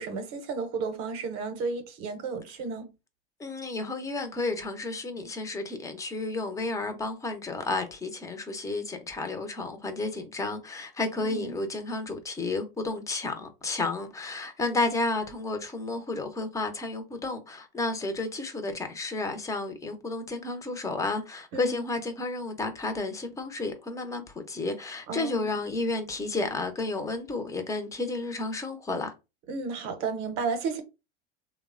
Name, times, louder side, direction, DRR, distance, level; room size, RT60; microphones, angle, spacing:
voice 1, 0.0-2.9 11.2-11.5 21.5-21.9 25.1-25.5 29.5-30.8, right 4 dB, 45° right, 0.6 m, -33 dB
voice 2, 3.4-29.1, left 3 dB, 10° left, 0.4 m, -32 dB
2.9 x 2.0 x 2.4 m
hypercardioid pair, 110°, 32 cm